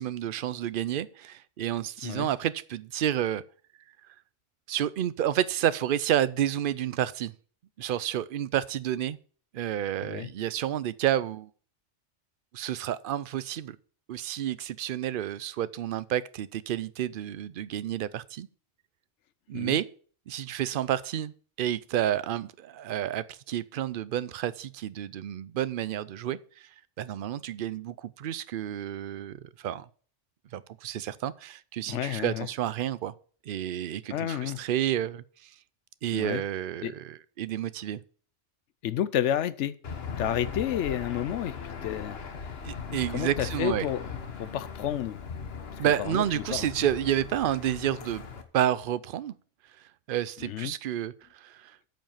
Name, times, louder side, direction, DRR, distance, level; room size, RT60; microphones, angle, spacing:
voice 1, 0.0-3.4 4.7-7.3 7.8-9.2 9.5-11.5 12.5-13.8 14.1-18.5 19.5-19.8 20.3-26.7 27.0-29.9 30.5-33.1 33.5-35.5 36.0-38.0 42.6-43.9 45.8-48.2 48.5-49.3 50.1-51.8, right 11 dB, 60° right, 0.6 m, -30 dB
voice 2, 31.9-32.5 34.1-34.6 36.1-36.4 36.8-36.9 38.8-39.8 40.2-42.5 43.1-44.1 44.4-45.2 45.8-46.7 50.4-50.7, left 11 dB, 75° left, 0.9 m, -31 dB
Aircraft / Engine, 39.8-48.4, left 5 dB, 55° left, 1.3 m, -39 dB
8.9 x 5.4 x 7.2 m
omnidirectional pair, 1.2 m